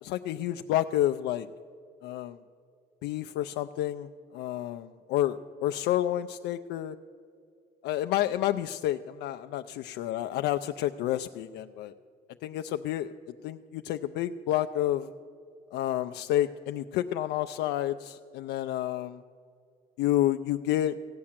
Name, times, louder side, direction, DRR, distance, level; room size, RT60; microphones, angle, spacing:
voice 1, 0.0-1.5 2.0-2.4 3.0-7.0 7.8-11.9 12.4-13.1 13.4-15.1 15.7-19.2 20.0-21.0, left 13 dB, 85° left, 7 dB, 0.4 m, -29 dB
16.0 x 8.6 x 7.3 m, 2.3 s
cardioid pair, 110°, 17 cm